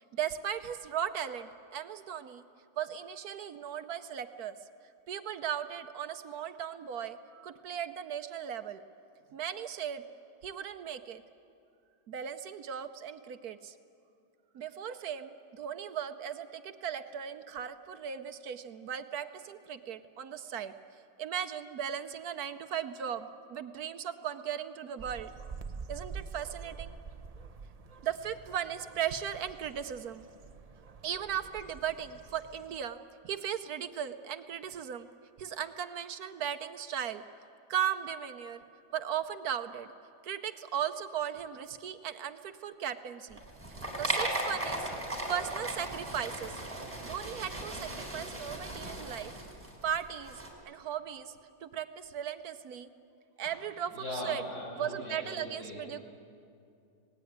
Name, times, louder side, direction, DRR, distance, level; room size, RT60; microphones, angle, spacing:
voice 1, 0.0-2.4 2.8-4.6 5.1-8.8 9.3-10.0 10.4-11.2 12.1-13.7 14.5-20.7 21.2-25.3 25.9-26.9 28.0-30.3 31.0-33.0 33.2-35.1 35.4-37.2 37.7-38.6 38.9-39.9 40.2-43.4 44.0-44.9 45.3-46.6 47.0-49.3 49.8-50.4 50.7-51.3 51.6-52.9 53.4-54.4 54.8-56.1, right 9 dB, 65° right, 10 dB, 1.2 m, -37 dB
sound 1, 25.0-32.8, right 5 dB, 85° right, 0.3 m, -47 dB
sound 2, 43.3-50.5, right 1 dB, 20° right, 4.2 m, -37 dB
voice 2, 53.9-55.8, left 1 dB, 65° left, -6 dB, 6.5 m, -39 dB
25.5 x 18.5 x 9.4 m, 2.6 s
omnidirectional pair, 1.9 m